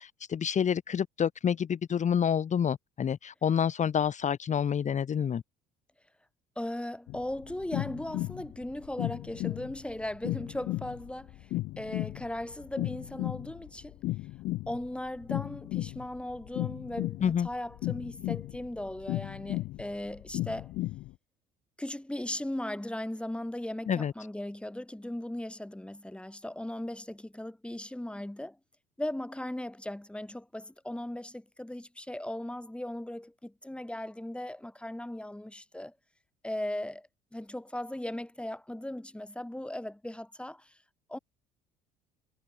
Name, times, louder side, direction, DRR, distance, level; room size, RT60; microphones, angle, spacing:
voice 1, 0.0-5.4 17.2-17.5 23.9-24.1, left 8 dB, 35° left, 1.7 m, -28 dB
voice 2, 6.6-14.0 14.7-20.7 21.8-28.6 29.0-35.9 36.4-40.8 41.1-41.2, left 1 dB, 5° left, 4.4 m, -38 dB
sound 1, 7.1-21.1, left 18 dB, 55° left, 0.8 m, -35 dB
figure-of-eight pair, 55°, 20 cm